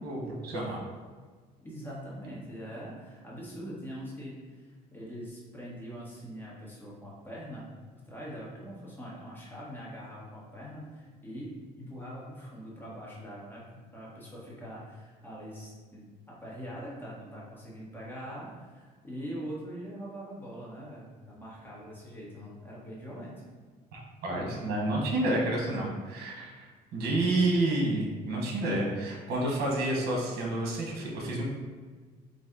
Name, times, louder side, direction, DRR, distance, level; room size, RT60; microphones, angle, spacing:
voice 1, 0.0-0.8 23.9-31.4, right 1 dB, 70° right, -1 dB, 1.1 m, -30 dB
voice 2, 1.6-7.7 8.0-16.0 16.4-23.3, equal, 10° left, -6 dB, 1.4 m, -43 dB
4.0 x 2.6 x 3.8 m, 1.5 s
cardioid pair, 110°, 17 cm